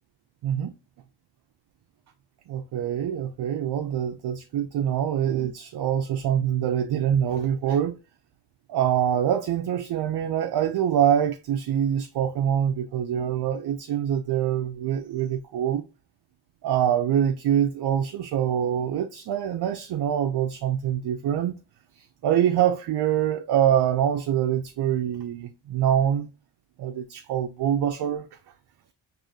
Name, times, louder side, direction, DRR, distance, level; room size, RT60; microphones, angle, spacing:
voice 1, 2.5-7.9 8.7-15.8 16.6-21.6 22.0-26.3 26.8-28.3, right 9 dB, 60° right, 0.5 m, -25 dB
4.7 x 2.6 x 2.6 m
cardioid pair, 80°, 46 cm